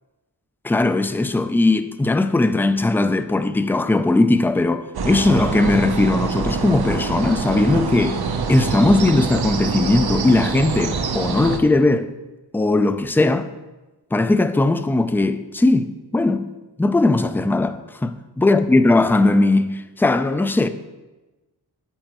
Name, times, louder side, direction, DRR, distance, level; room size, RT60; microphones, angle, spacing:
voice 1, 0.6-8.2 8.5-12.1 12.5-13.5 14.1-16.5 16.8-20.7, left 2 dB, 5° left, 0.3 m, -18 dB
sound 1, 4.9-11.6, right 5 dB, 70° right, 0.8 m, -25 dB
10.0 x 7.2 x 3.0 m
wide cardioid pair, 100°, 39 cm